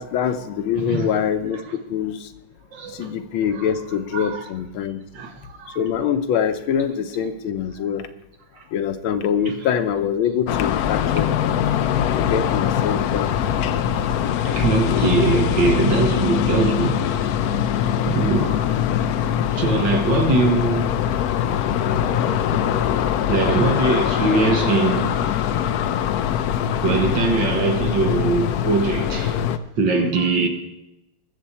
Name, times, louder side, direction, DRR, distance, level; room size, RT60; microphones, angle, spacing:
voice 1, 0.0-1.6 1.9-2.3 2.9-5.0 5.8-8.1 8.7-11.3 11.8-13.6 14.9-15.2 22.7-23.2 30.2-30.3, left 8 dB, 90° left, 1.7 m, -24 dB
voice 2, 0.8-1.2 1.5-1.6 2.7-3.1 3.4-4.5 5.1-5.9 9.5-9.6 13.5-13.6 14.4-17.1 18.1-18.8 19.5-20.9 23.3-25.2 26.8-29.4 29.8-30.5, right 4 dB, 65° right, 2.0 m, -22 dB
sound 1, 10.5-29.6, left 9 dB, 75° left, 0.8 m, -22 dB
21.0 x 7.4 x 4.3 m
omnidirectional pair, 2.2 m